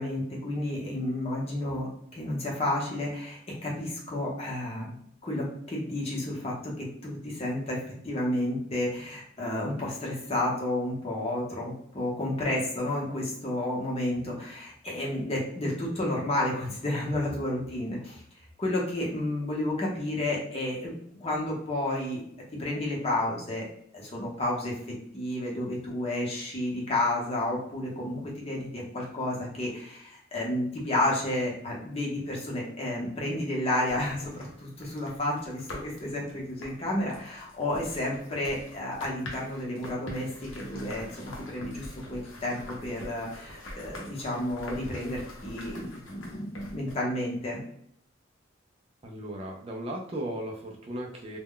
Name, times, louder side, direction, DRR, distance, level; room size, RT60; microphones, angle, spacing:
voice 1, 0.0-4.9 5.2-18.2 18.6-20.9 21.2-22.2 22.6-23.6 23.9-24.7 25.1-41.2 41.5-47.6, left 1 dB, 30° left, -3 dB, 0.7 m, -31 dB
sound 1, 33.9-46.9, left 1 dB, 75° left, 0.7 m, -45 dB
voice 2, 49.0-51.4, right 1 dB, 30° right, 0 dB, 0.3 m, -36 dB
2.1 x 2.1 x 3.6 m, 0.69 s
head